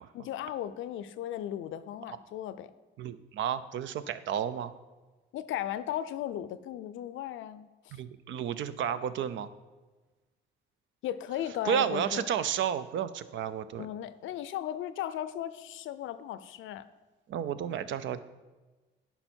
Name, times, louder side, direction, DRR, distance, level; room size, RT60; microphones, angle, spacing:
voice 1, 0.1-2.7 5.3-8.0 11.0-12.2 13.8-16.9, left 11 dB, 80° left, 14 dB, 0.5 m, -36 dB
voice 2, 3.0-4.7 7.9-9.5 11.6-13.9 17.3-18.2, right 9 dB, 70° right, 13 dB, 0.5 m, -32 dB
9.9 x 5.6 x 4.4 m, 1.2 s
cardioid pair, 90°, 20 cm